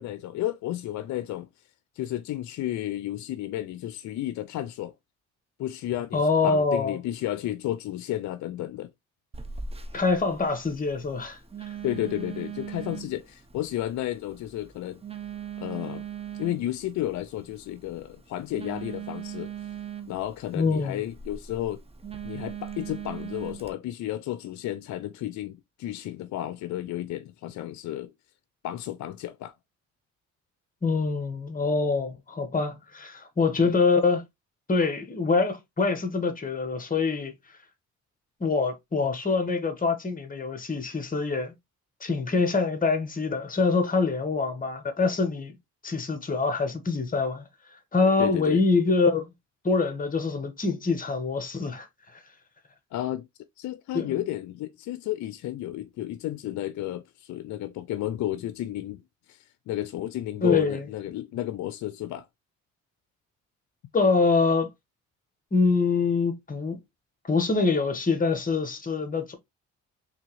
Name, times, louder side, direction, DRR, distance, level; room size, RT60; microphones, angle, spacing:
voice 1, 0.0-1.5 1.9-4.9 5.6-8.9 11.8-15.0 15.6-16.1 16.4-19.5 20.1-21.8 22.2-28.1 28.6-29.5 33.6-33.7 48.2-48.6 52.9-53.3 53.6-59.0 59.3-62.2, left 13 dB, 70° left, 0.5 m, -32 dB
voice 2, 6.1-7.0 9.9-11.4 20.5-21.0 30.8-34.2 34.7-37.3 38.4-41.5 42.0-45.6 45.8-47.5 47.9-49.3 49.6-51.9 53.9-54.1 60.4-60.8 63.9-64.7 65.5-66.8 67.3-69.3, left 4 dB, 30° left, 1.2 m, -25 dB
Telephone, 9.3-23.7, right 8 dB, 20° right, 0.7 m, -40 dB
3.6 x 3.4 x 3.0 m
cardioid pair, 90°, 30 cm